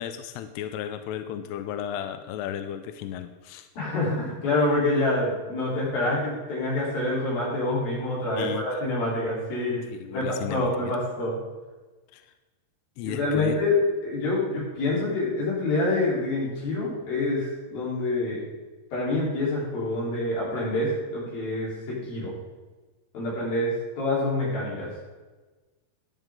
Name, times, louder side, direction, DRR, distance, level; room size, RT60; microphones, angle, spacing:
voice 1, 0.0-3.7 8.4-8.6 10.0-10.9 12.1-12.3 13.0-13.6, left 10 dB, 85° left, 9 dB, 2.4 m, -34 dB
voice 2, 3.8-9.8 10.1-11.4 13.0-13.8 14.0-18.4 18.9-22.3 23.1-24.9, left 2 dB, 55° left, -5 dB, 5.8 m, -27 dB
14.5 x 10.5 x 3.9 m, 1.3 s
omnidirectional pair, 5.2 m